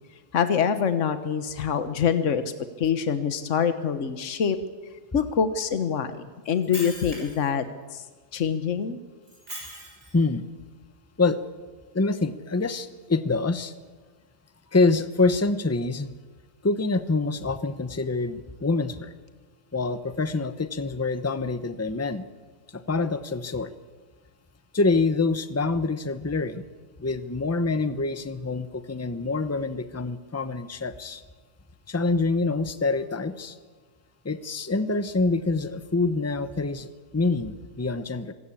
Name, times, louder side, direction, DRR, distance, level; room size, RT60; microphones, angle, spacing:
voice 1, 0.3-2.4 2.8-4.6 5.1-7.7 7.9-8.0 8.3-9.0, left 7 dB, 70° left, 10 dB, 1.4 m, -25 dB
Shatter, 6.4-7.5 9.3-10.2, right 1 dB, 85° right, 7.1 m, -40 dB
voice 2, 10.1-10.4 11.2-11.4 11.9-13.7 14.7-16.1 16.6-19.1 19.7-22.2 22.7-23.7 24.7-26.6 27.0-31.2 31.9-33.6 34.2-38.3, left 3 dB, 15° left, 12 dB, 0.8 m, -26 dB
25.5 x 16.5 x 8.6 m, 1.4 s
omnidirectional pair, 1.3 m